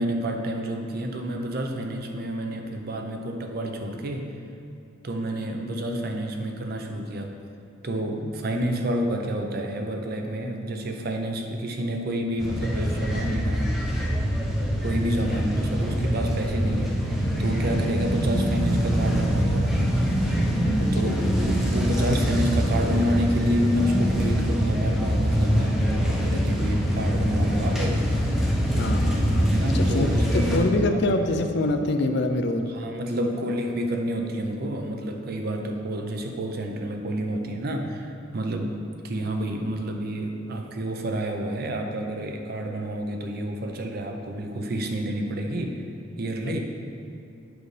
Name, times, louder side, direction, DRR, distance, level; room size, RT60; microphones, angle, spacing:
voice 1, 0.0-4.3 5.0-7.4 7.8-13.8 14.7-19.9 20.9-28.1 29.5-31.0 32.7-45.8 46.2-46.6, right 1 dB, 50° right, 3 dB, 0.6 m, -29 dB
sound 1, 12.4-30.6, equal, ahead, 0.7 m, -24 dB
voice 2, 20.8-21.2 28.8-32.7 33.1-33.3 46.4-46.5, left 2 dB, 55° left, 6 dB, 0.4 m, -26 dB
7.9 x 5.2 x 3.2 m, 2.7 s
head